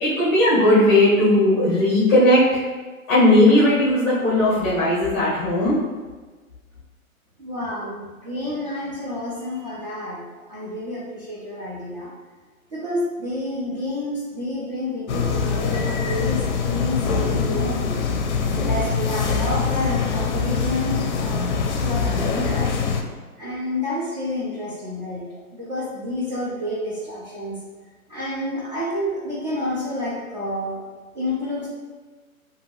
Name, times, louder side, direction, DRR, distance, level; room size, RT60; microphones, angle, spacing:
voice 1, 0.0-2.4 3.1-5.8, left 1 dB, 15° left, -8 dB, 0.6 m, -17 dB
voice 2, 7.4-12.1 12.7-18.0 18.6-21.5 21.8-22.8 23.4-27.6 28.1-30.8 31.1-31.7, left 1 dB, 35° right, -8 dB, 0.4 m, -29 dB
sound 1, 15.1-23.0, left 5 dB, 55° left, 0.5 m, -23 dB
2.7 x 2.7 x 2.8 m, 1.3 s
hypercardioid pair, 150°, 43 cm